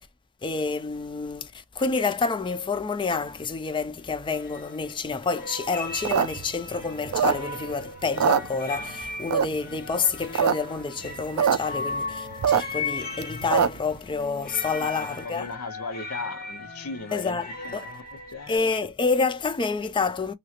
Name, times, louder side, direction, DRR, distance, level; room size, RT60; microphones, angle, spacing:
voice 1, 0.4-15.5 17.1-17.9 18.5-20.3, left 4 dB, 20° left, 0.4 m, -28 dB
sound 1, 2.7-2.8 3.0-3.4 4.3-5.1 5.3-18.6, left 3 dB, 45° left, 1.0 m, -37 dB
sound 2, 5.9-7.7 8.0-8.9 9.3-9.7 10.1-10.5 10.8-10.9 11.0-11.6 11.9-13.9, right 8 dB, 75° right, 0.3 m, -23 dB
voice 2, 14.7-17.4 17.6-18.6, left 3 dB, 75° left, 0.7 m, -37 dB
2.9 x 2.9 x 2.3 m
head